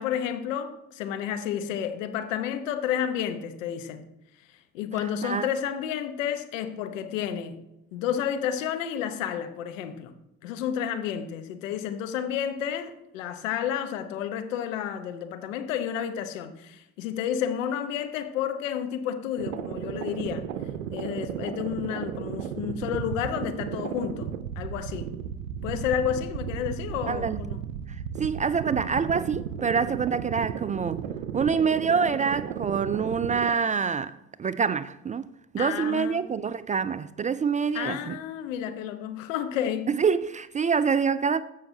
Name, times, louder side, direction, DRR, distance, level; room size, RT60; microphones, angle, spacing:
voice 1, 0.0-4.1 4.7-7.6 7.9-10.1 10.4-20.5 20.9-25.2 25.6-27.6 35.6-36.3 37.7-39.9, left 9 dB, 80° left, 0.9 m, -31 dB
sound 1, 19.4-33.5, right 8 dB, 85° right, 0.6 m, -34 dB
voice 2, 27.1-27.4 27.9-31.0 31.3-35.2 35.5-38.2 39.9-41.4, right 6 dB, 20° right, 0.3 m, -26 dB
14.5 x 5.7 x 2.8 m
hypercardioid pair, 55°, 38 cm